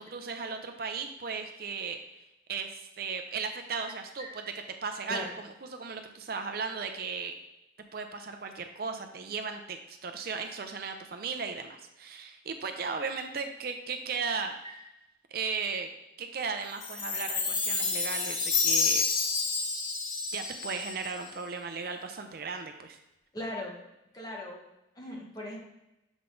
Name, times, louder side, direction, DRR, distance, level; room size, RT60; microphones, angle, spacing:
voice 1, 0.1-2.0 2.5-4.4 4.8-7.4 7.9-14.5 15.3-15.9 16.2-19.0 20.3-23.0, right 5 dB, 50° right, 6 dB, 0.5 m, -36 dB
Chime, 16.8-21.3, left 4 dB, 90° left, 1.0 m, -29 dB
voice 2, 23.3-23.8 24.1-24.6 25.0-25.6, left 1 dB, 20° left, -1 dB, 1.1 m, -38 dB
7.0 x 3.8 x 3.8 m, 0.90 s
head